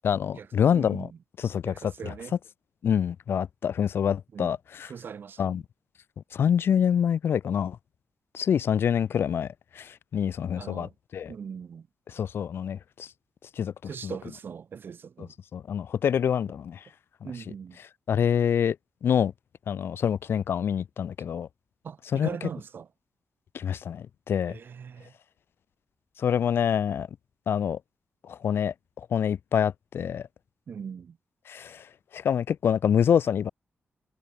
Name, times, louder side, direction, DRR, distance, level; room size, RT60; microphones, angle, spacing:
voice 1, 0.0-1.1 1.4-2.1 2.8-4.9 5.4-5.6 6.3-7.8 8.3-9.5 9.8-11.3 12.1-13.1 13.6-13.7 14.0-14.1 15.5-16.8 18.1-18.8 19.0-19.3 19.7-21.5 22.1-22.3 23.5-24.6 26.2-27.1 27.5-27.8 28.3-30.3 31.5-31.9 32.1-33.5, left 8 dB, 65° left, 0.4 m, -26 dB
voice 2, 0.7-1.1 1.6-2.4 4.3-4.6 4.8-5.6 10.5-10.9 11.3-11.9 13.8-15.3 17.2-17.8 21.8-22.9 24.5-25.1 30.7-31.2, right 7 dB, 55° right, 2.1 m, -40 dB
wide cardioid pair, 140°, 4 cm